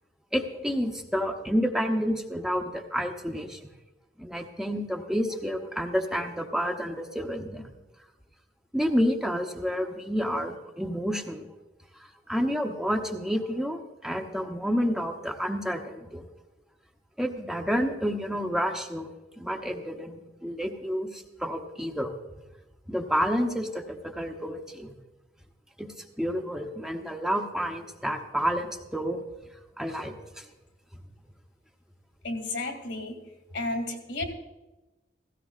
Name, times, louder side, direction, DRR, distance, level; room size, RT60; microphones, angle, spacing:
voice 1, 0.3-3.6 4.2-7.7 8.7-11.5 12.3-16.3 17.2-19.1 19.4-22.1 22.9-24.9 25.8-29.2 29.8-30.4, equal, 5° right, 3 dB, 0.8 m, -29 dB
voice 2, 32.2-33.2 33.5-34.2, left 2 dB, 85° left, 5 dB, 2.3 m, -32 dB
17.0 x 16.0 x 2.4 m, 1.1 s
head